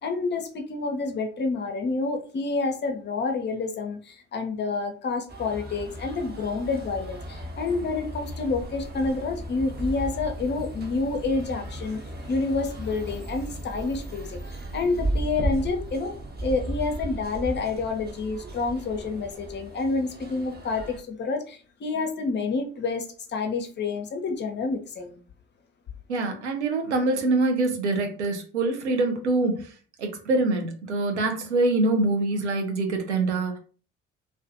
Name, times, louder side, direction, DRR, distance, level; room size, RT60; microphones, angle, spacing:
voice 1, 0.0-12.0 12.3-16.2 16.4-25.2, left 3 dB, 30° left, 5 dB, 0.6 m, -28 dB
sound 1, 5.3-21.0, right 1 dB, 30° right, 0.9 m, -35 dB
voice 2, 26.1-29.7 30.0-33.6, right 2 dB, 85° right, 4 dB, 0.5 m, -25 dB
2.4 x 2.2 x 2.5 m, 0.40 s
figure-of-eight pair, 50°, 33 cm